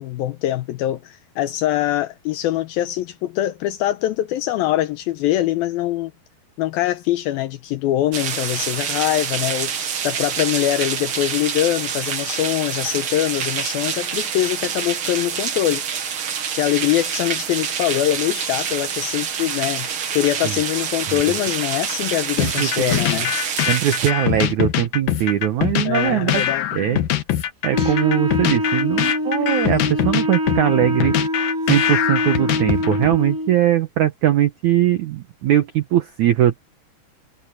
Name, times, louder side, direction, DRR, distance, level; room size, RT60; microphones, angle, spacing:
voice 1, 0.0-6.1 6.6-9.7 10.0-15.8 16.6-23.3 25.9-26.6, left 14 dB, 80° left, 2.2 m, -23 dB
sound 1, 8.1-24.1, right 7 dB, 60° right, 1.4 m, -26 dB
sound 2, 22.4-33.2, left 11 dB, 60° left, 2.8 m, -23 dB
voice 2, 22.4-23.0 23.7-27.0 27.6-31.1 31.7-36.6, right 12 dB, 85° right, 1.7 m, -20 dB
Wind instrument woodwind instrument, 27.7-33.6, left 1 dB, 10° right, 1.3 m, -24 dB
omnidirectional pair, 4.9 m